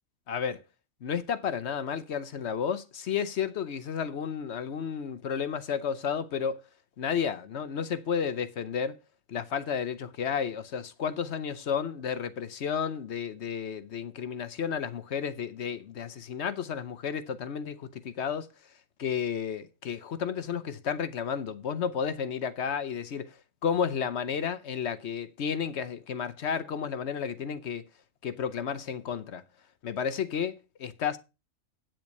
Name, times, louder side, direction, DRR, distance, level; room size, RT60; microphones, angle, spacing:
voice 1, 0.3-0.6 1.0-6.6 7.0-9.0 9.3-18.5 19.0-23.4 23.6-27.9 28.2-29.4 29.8-31.2, left 7 dB, 60° left, 1.0 m, -32 dB
8.8 x 7.7 x 5.4 m
omnidirectional pair, 1.4 m